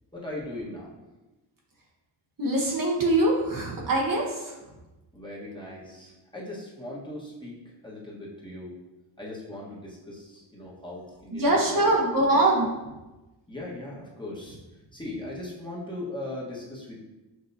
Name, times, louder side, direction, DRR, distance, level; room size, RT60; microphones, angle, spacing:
voice 1, 0.1-0.9 5.1-8.7 9.2-11.6 12.0-12.5 13.5-14.6 14.9-17.0, left 1 dB, 10° left, -5 dB, 1.4 m, -39 dB
voice 2, 2.4-4.5 11.3-12.7, right 2 dB, 45° right, -2 dB, 1.2 m, -23 dB
6.4 x 2.9 x 2.8 m, 1.1 s
cardioid pair, 65°, 47 cm